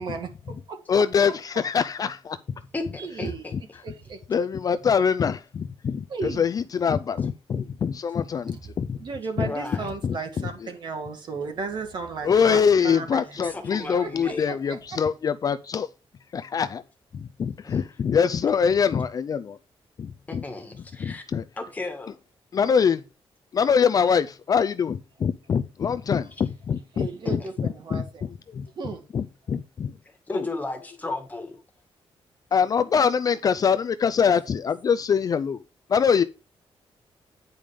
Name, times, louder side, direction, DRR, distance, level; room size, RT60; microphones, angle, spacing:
voice 1, 0.0-1.0 3.0-3.4 3.8-4.2 6.1-6.5 9.0-13.5 14.0-14.8 26.9-28.3 28.8-29.0, right 4 dB, 50° right, 2.1 m, -34 dB
voice 2, 0.9-2.4 3.5-3.6 4.3-9.0 9.4-9.5 10.0-10.5 12.2-15.9 16.3-16.8 17.1-19.6 20.0-20.4 21.0-21.4 22.5-23.0 23.5-28.7 29.1-29.9 30.3-30.5 32.5-35.6 35.9-36.2, left 6 dB, 40° left, 0.4 m, -24 dB
voice 3, 2.7-3.5 9.4-9.9 13.4-14.5 17.6-17.8 20.3-21.2 21.6-22.2 27.3-27.5 30.0-31.6, left 2 dB, 15° left, 1.8 m, -34 dB
9.3 x 5.2 x 4.9 m
wide cardioid pair, 175°, 10 cm